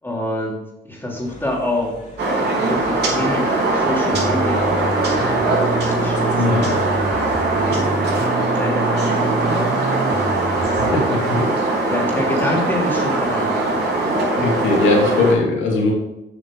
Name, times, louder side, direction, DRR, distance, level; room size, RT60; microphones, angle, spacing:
voice 1, 0.0-2.0 2.6-6.7 7.3-7.9 8.5-9.7 10.5-11.0 11.9-13.7, left 1 dB, 10° left, -2 dB, 2.9 m, -27 dB
sound 1, 1.2-8.2, left 2 dB, 35° left, 2.8 m, -37 dB
sound 2, 2.2-15.3, right 2 dB, 55° right, 3.3 m, -20 dB
sound 3, 4.1-11.0, right 3 dB, 20° right, 0.6 m, -28 dB
voice 2, 6.4-6.7 10.6-11.9 14.4-15.9, left 3 dB, 75° left, -2 dB, 2.7 m, -20 dB
7.9 x 6.2 x 4.8 m, 0.92 s
cardioid pair, 90°, 20 cm